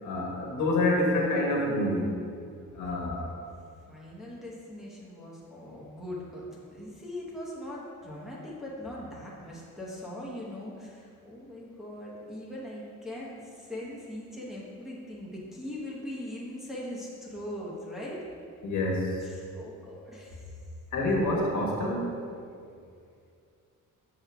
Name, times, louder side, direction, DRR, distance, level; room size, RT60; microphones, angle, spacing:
voice 1, 0.0-2.1 2.7-3.2 18.6-19.2 20.9-22.2, left 1 dB, 70° left, -2 dB, 1.4 m, -27 dB
voice 2, 2.8-3.4 3.9-6.4 6.7-18.2 19.2-20.4, left 1 dB, ahead, -6 dB, 0.8 m, -41 dB
7.1 x 5.8 x 3.4 m, 2.4 s
cardioid pair, 175°, 31 cm